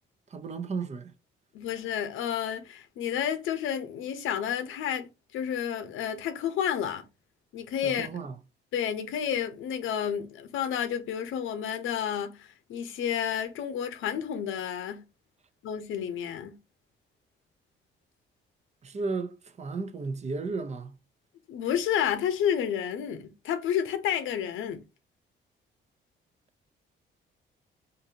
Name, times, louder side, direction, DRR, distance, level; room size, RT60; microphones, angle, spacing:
voice 1, 0.3-1.1 7.8-8.3 18.8-20.9, right 4 dB, 35° right, 0.6 m, -34 dB
voice 2, 1.5-7.0 7.5-8.1 8.7-15.0 15.6-16.6 21.5-24.8, left 9 dB, 85° left, 0.7 m, -30 dB
3.8 x 2.6 x 2.7 m
cardioid pair, 90°, 20 cm